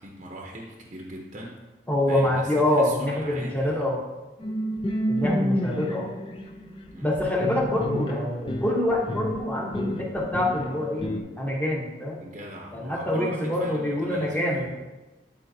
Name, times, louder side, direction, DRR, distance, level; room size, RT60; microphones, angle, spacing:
voice 1, 0.0-1.6 2.1-3.9 6.9-7.1 12.2-14.7, right 1 dB, 40° right, -1 dB, 0.8 m, -40 dB
voice 2, 1.9-4.0 5.1-6.1 7.0-11.1 11.4-12.2 12.7-14.7, left 1 dB, 10° left, -2 dB, 1.0 m, -25 dB
sound 1, 4.4-11.2, equal, 30° left, 0.5 m, -30 dB
11.0 x 4.4 x 2.8 m, 1.1 s
head